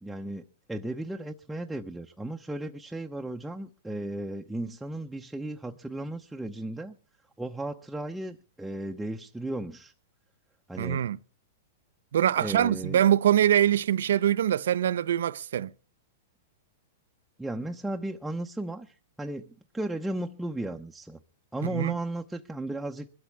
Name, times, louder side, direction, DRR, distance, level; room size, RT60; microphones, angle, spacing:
voice 1, 0.0-7.0 7.4-9.9 10.7-11.0 12.4-13.0 17.4-21.2 21.5-23.1, right 1 dB, 5° right, 0.8 m, -35 dB
voice 2, 10.8-11.2 12.1-15.7 21.7-21.9, right 10 dB, 75° right, 0.6 m, -23 dB
22.0 x 12.5 x 3.5 m
hypercardioid pair, 130°, 0 cm